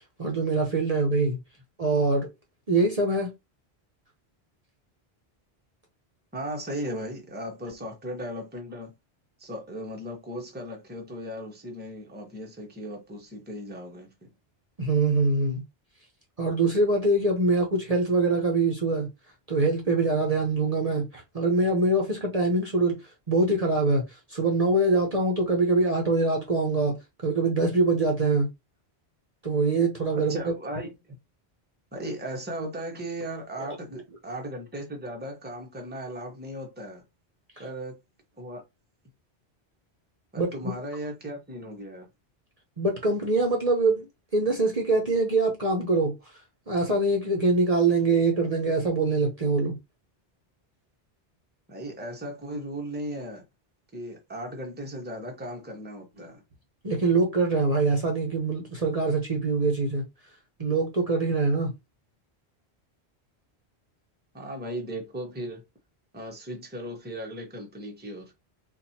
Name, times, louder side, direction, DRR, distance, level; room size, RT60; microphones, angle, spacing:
voice 1, 0.2-1.4 1.8-2.3 2.7-3.3 14.8-15.6 16.4-19.1 19.5-23.0 23.3-24.0 24.3-27.0 27.2-28.5 29.4-30.4 40.4-40.7 42.8-44.1 44.3-46.1 46.7-49.8 56.8-60.0 60.6-61.7, right 3 dB, 40° right, 0.8 m, -24 dB
voice 2, 6.3-8.9 9.4-14.1 30.1-30.9 31.9-37.0 37.6-38.0 38.4-38.6 40.3-42.1 51.7-53.4 53.9-56.4 64.3-65.6 66.1-68.3, right 1 dB, 10° right, 0.8 m, -37 dB
4.3 x 2.5 x 2.7 m
omnidirectional pair, 1.1 m